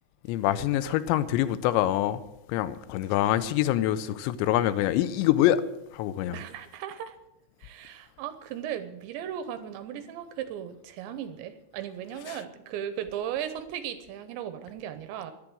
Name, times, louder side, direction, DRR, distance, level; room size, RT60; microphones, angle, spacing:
voice 1, 0.2-2.2 2.5-5.6 5.9-6.4 12.3-12.4, left 13 dB, 80° left, 2.7 m, -25 dB
voice 2, 6.3-7.2 7.6-15.3, right 10 dB, 80° right, 2.9 m, -36 dB
12.5 x 11.0 x 7.8 m
omnidirectional pair, 5.6 m